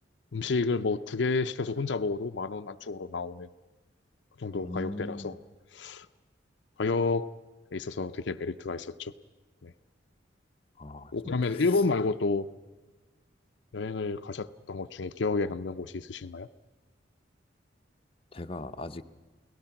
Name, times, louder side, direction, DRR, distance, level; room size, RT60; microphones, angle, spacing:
voice 1, 0.3-3.5 4.4-5.3 5.7-6.1 6.8-7.3 7.7-9.1 9.6-9.7 11.1-12.5 13.7-16.5, left 3 dB, 70° left, 9 dB, 0.6 m, -30 dB
voice 2, 4.6-5.4 10.8-11.7 18.3-19.0, left 2 dB, 30° left, 6 dB, 0.7 m, -39 dB
29.5 x 18.0 x 5.9 m, 1.3 s
head